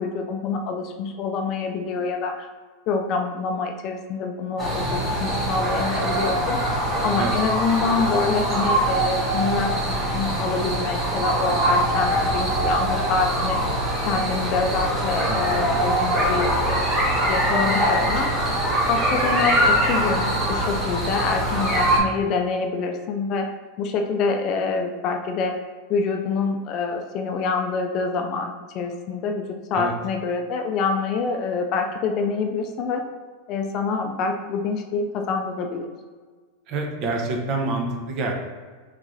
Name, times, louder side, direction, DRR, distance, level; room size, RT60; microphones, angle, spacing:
voice 1, 0.0-2.5 2.9-6.6 7.0-13.6 14.0-17.0 17.3-18.3 18.9-23.5 23.8-25.6 25.9-29.4 29.7-33.0 33.5-35.9, left 4 dB, 35° left, 4 dB, 0.4 m, -26 dB
sound 1, 4.6-22.0, right 1 dB, 15° right, 1.1 m, -23 dB
voice 2, 15.3-15.8 29.7-29.9 36.7-38.3, right 2 dB, 35° right, 1 dB, 0.8 m, -27 dB
3.8 x 3.5 x 3.2 m, 1.4 s
supercardioid pair, 165°, 0 cm